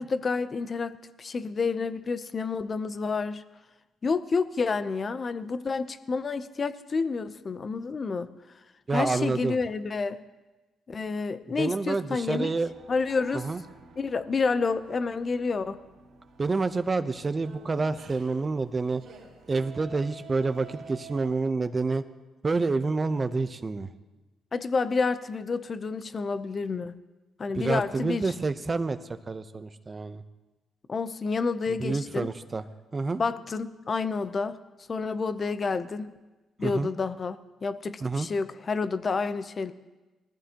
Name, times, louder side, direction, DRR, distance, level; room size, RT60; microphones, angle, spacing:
voice 1, 0.0-3.4 4.0-8.3 8.9-10.2 10.9-12.5 12.9-13.4 14.0-15.8 24.5-26.9 27.4-28.3 30.9-32.3 33.2-34.6 34.9-36.1 36.6-39.7, left 4 dB, 40° left, 13 dB, 0.7 m, -29 dB
voice 2, 8.9-9.6 11.5-12.7 13.3-13.6 16.4-19.0 19.5-22.0 22.4-23.9 27.5-30.2 31.8-32.6 32.9-33.2 36.6-36.9 38.0-38.3, right 3 dB, 30° right, 11 dB, 0.8 m, -28 dB
sound 1, 12.6-21.3, right 6 dB, 70° right, 3.1 m, -49 dB
20.5 x 14.5 x 3.0 m, 1.1 s
cardioid pair, 90°, 0 cm